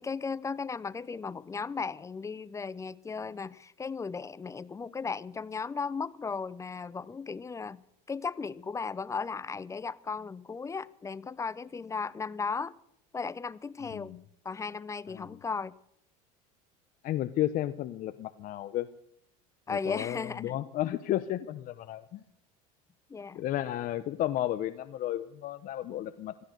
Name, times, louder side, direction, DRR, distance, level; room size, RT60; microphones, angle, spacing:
voice 1, 0.0-7.8 8.1-12.7 13.1-14.1 14.4-15.7 19.7-20.5 23.1-23.4, left 5 dB, 15° left, 0.6 m, -36 dB
voice 2, 13.9-14.2 15.1-15.4 17.0-18.9 19.7-22.2 23.3-26.4, left 13 dB, 45° left, 0.7 m, -33 dB
17.0 x 13.0 x 6.6 m
supercardioid pair, 105°, 19 cm